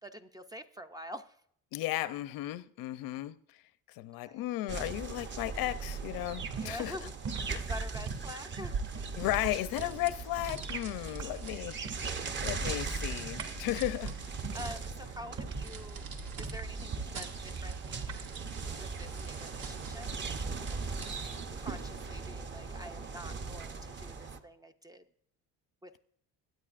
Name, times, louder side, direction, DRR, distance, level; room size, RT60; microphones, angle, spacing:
voice 1, 0.0-1.4 4.2-4.5 6.6-7.1 7.5-8.8 9.8-9.9 14.5-16.1 16.4-18.2 18.8-20.1 20.7-20.8 21.6-25.0 25.8-26.0, equal, 10° right, 0.4 m, -46 dB
voice 2, 1.7-3.6 3.9-7.1 9.2-14.1 21.1-21.3, left 16 dB, 80° left, 0.6 m, -35 dB
sound 1, 4.7-24.4, right 4 dB, 30° right, 0.8 m, -40 dB
sound 2, 5.8-9.6 9.8-11.5 11.7-12.2 12.6-12.9 13.2-15.8 16.3-17.0 17.8-18.2, right 5 dB, 55° right, 2.4 m, -41 dB
sound 3, 8.6-21.5, right 4 dB, 80° right, 2.0 m, -44 dB
22.0 x 9.3 x 2.5 m
cardioid pair, 160°, 34 cm